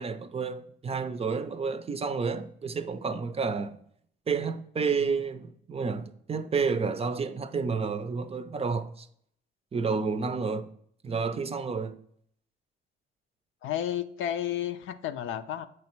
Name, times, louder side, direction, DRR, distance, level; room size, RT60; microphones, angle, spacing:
voice 1, 0.0-3.8 4.3-9.1 9.7-10.7 11.0-12.0, right 5 dB, 30° right, 0.5 m, -30 dB
voice 2, 13.6-15.7, left 11 dB, 80° left, 0.5 m, -32 dB
7.9 x 3.1 x 4.5 m
cardioid pair, 90°, 20 cm